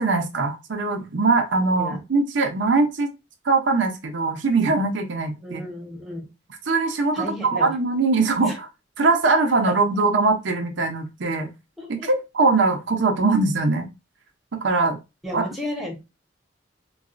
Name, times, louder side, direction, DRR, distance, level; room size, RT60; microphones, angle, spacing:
voice 1, 0.0-3.1 3.4-5.6 6.7-8.7 9.0-11.5 11.9-13.9 14.5-15.0 15.3-15.5, right 3 dB, 65° right, 4 dB, 0.6 m, -21 dB
voice 2, 5.4-6.3 7.1-7.7 8.0-8.1 8.4-8.6 9.7-9.8 11.8-12.1 15.2-16.0, left 1 dB, ahead, -2 dB, 0.9 m, -33 dB
4.0 x 2.3 x 2.5 m, 0.25 s
head